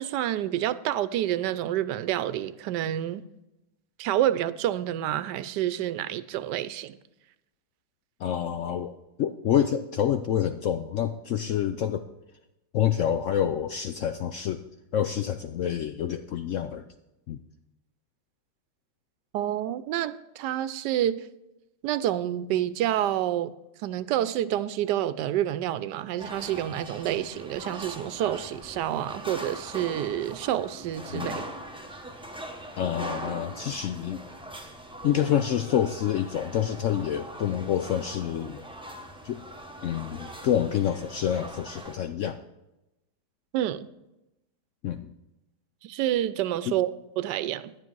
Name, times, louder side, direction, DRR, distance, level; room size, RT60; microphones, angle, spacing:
voice 1, 0.0-3.2 4.0-7.0 19.3-21.2 21.8-23.5 23.8-31.5 43.5-43.9 45.9-47.7, right 12 dB, 85° right, 1.2 m, -28 dB
voice 2, 8.2-8.9 9.2-12.0 12.7-14.6 14.9-16.9 17.3-17.4 31.1-31.4 32.8-34.2 35.0-38.6 39.2-39.4 39.8-42.4 44.8-45.1 46.7-46.8, left 10 dB, 75° left, 0.7 m, -27 dB
sound 1, 26.2-42.0, right 1 dB, 5° right, 0.5 m, -41 dB
10.5 x 9.5 x 4.6 m
omnidirectional pair, 1.8 m